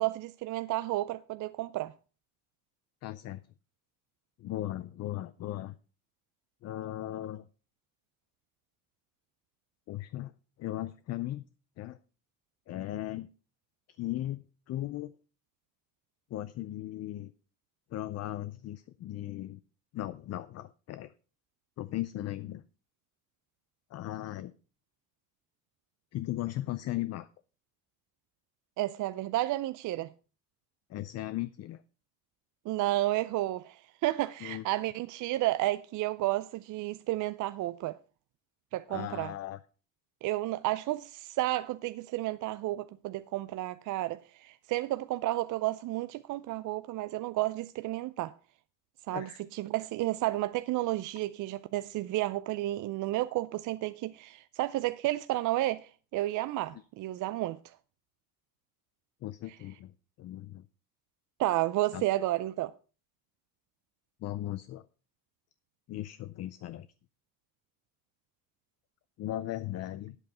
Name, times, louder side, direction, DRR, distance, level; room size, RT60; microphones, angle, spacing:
voice 1, 0.0-1.9 28.8-30.1 32.7-38.0 38.7-39.3 40.2-48.3 49.1-57.7 61.4-62.7, right 16 dB, 55° right, 0.5 m, -32 dB
voice 2, 3.0-3.4 4.4-5.7 6.6-7.4 9.9-10.3 10.6-11.4 11.8-12.0 12.7-13.3 14.0-15.1 16.3-17.3 17.9-19.6 19.9-21.1 21.8-22.6 23.9-24.5 26.1-27.3 30.9-31.8 34.4-34.6 38.9-39.6 49.1-49.4 56.7-56.8 59.2-59.9 60.2-60.6 61.9-62.0 64.2-64.9 65.9-66.9 69.2-70.2, left 14 dB, 45° left, 0.5 m, -37 dB
9.3 x 8.0 x 5.4 m
cardioid pair, 165°, 36 cm